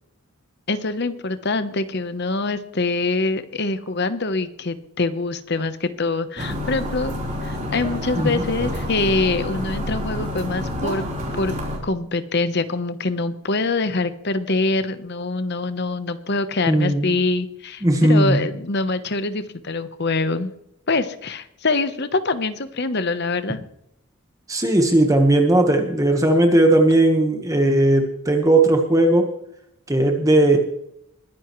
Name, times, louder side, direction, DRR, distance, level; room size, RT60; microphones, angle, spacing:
voice 1, 0.7-7.1 7.4-11.0 11.4-11.5 11.8-20.5 20.9-23.6, left 3 dB, 50° left, 11 dB, 1.0 m, -24 dB
sound 1, 6.4-11.8, left 1 dB, 35° right, 4.0 m, -28 dB
voice 2, 16.7-17.2 17.8-18.5 24.5-29.3 29.9-30.6, right 1 dB, 15° right, 4 dB, 1.3 m, -17 dB
22.0 x 11.0 x 3.2 m, 0.77 s
head